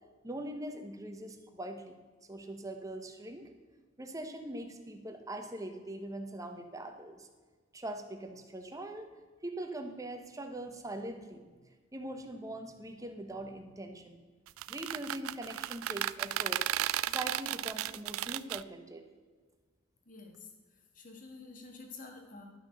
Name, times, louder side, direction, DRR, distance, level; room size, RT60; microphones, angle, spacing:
voice 1, 0.2-2.0 2.3-3.5 4.0-7.3 7.7-9.1 9.4-11.5 11.9-14.2 14.7-16.6 17.0-19.0, right 1 dB, 15° right, 5 dB, 1.1 m, -42 dB
sound 1, 14.5-18.6, right 13 dB, 90° right, 0.4 m, -34 dB
voice 2, 20.1-20.5 20.9-22.4, left 3 dB, 40° left, 3 dB, 1.8 m, -49 dB
12.0 x 6.1 x 6.5 m, 1.4 s
head